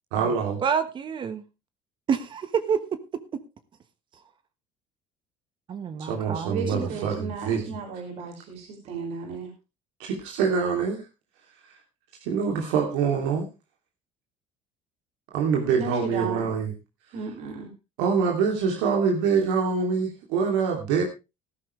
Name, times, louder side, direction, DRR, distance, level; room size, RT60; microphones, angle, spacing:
voice 1, 0.1-0.6 6.0-7.6 10.1-11.0 12.2-13.5 15.3-16.7 18.0-21.0, right 6 dB, 85° right, 2.9 m, -25 dB
voice 2, 0.6-1.4 2.1-2.8 5.7-7.1, right 7 dB, 40° right, 1.3 m, -28 dB
voice 3, 6.5-9.5 15.7-16.5 17.1-17.7, right 4 dB, 65° right, 5.3 m, -34 dB
14.5 x 12.5 x 3.3 m
supercardioid pair, 100°, 12 cm